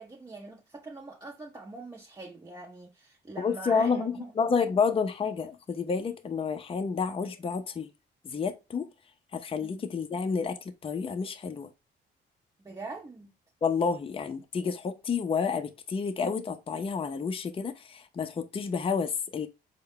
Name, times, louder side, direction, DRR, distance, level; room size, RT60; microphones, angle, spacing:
voice 1, 0.0-4.5 9.6-9.8 12.6-13.3, right 3 dB, 20° right, 0.7 m, -43 dB
voice 2, 3.4-7.9 8.2-8.9 9.3-11.7 13.6-19.5, left 5 dB, 30° left, 0.5 m, -30 dB
4.4 x 2.2 x 3.5 m
cardioid pair, 90°, 20 cm